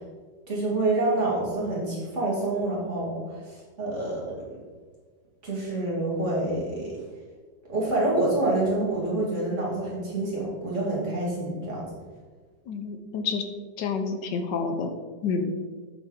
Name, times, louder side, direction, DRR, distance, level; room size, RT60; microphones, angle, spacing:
voice 1, 0.5-4.2 5.4-7.0 7.7-11.9, right 2 dB, 40° right, -5 dB, 2.4 m, -27 dB
voice 2, 12.7-13.4 13.8-14.9 15.2-15.5, left 5 dB, 75° left, 6 dB, 1.3 m, -28 dB
7.8 x 6.0 x 3.7 m, 1.5 s
omnidirectional pair, 1.9 m